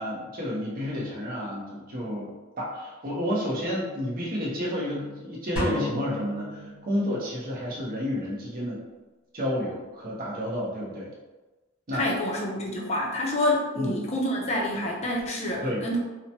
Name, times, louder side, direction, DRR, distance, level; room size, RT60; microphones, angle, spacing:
voice 1, 0.0-2.3 2.6-8.8 9.3-11.1 11.9-12.1 13.8-14.1 15.6-15.8, equal, 45° right, -4 dB, 0.8 m, -30 dB
sound 1, 5.6-7.4, left 1 dB, 5° right, 0.9 m, -33 dB
voice 2, 11.9-16.0, left 1 dB, 35° left, -2 dB, 0.5 m, -27 dB
2.9 x 2.1 x 2.7 m, 1.2 s
head